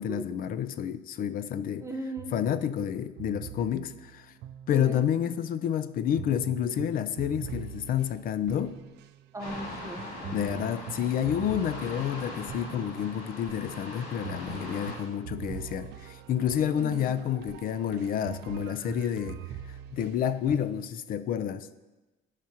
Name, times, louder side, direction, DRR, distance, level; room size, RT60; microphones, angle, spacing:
voice 1, 0.0-1.9 2.3-4.3 4.7-8.8 10.3-19.4 19.9-21.7, left 9 dB, 55° left, 0.5 m, -29 dB
voice 2, 1.8-2.3 4.7-5.0 9.3-10.7 16.8-17.1, right 2 dB, 15° right, 0.9 m, -38 dB
sound 1, 2.2-5.3 6.2-20.9, right 10 dB, 80° right, 0.4 m, -43 dB
sound 2, 9.4-15.0, left 1 dB, 80° left, 2.7 m, -41 dB
14.0 x 5.0 x 2.9 m
cardioid pair, 110°, 17 cm